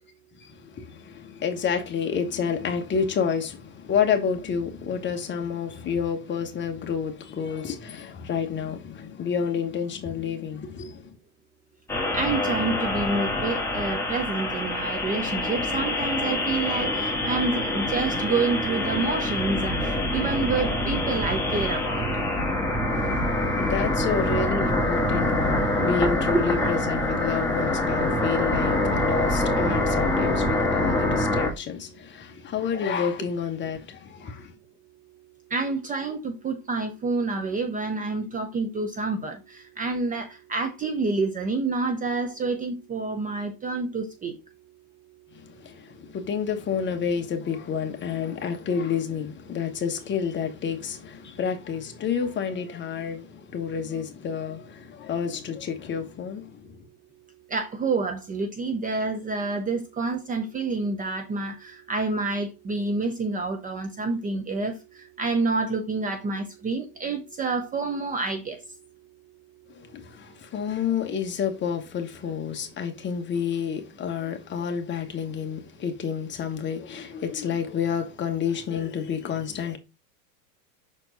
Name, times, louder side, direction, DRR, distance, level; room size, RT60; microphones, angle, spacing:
voice 1, 0.4-11.2 22.9-34.5 45.3-56.8 69.7-79.8, left 7 dB, 25° left, 1.2 m, -29 dB
sound 1, 11.9-31.5, left 1 dB, 5° left, 1.6 m, -25 dB
voice 2, 12.1-19.7 20.1-22.1 35.5-44.3 57.5-64.7 65.2-68.6, right 3 dB, 15° right, 0.7 m, -28 dB
6.0 x 4.4 x 4.0 m
supercardioid pair, 125°, 47 cm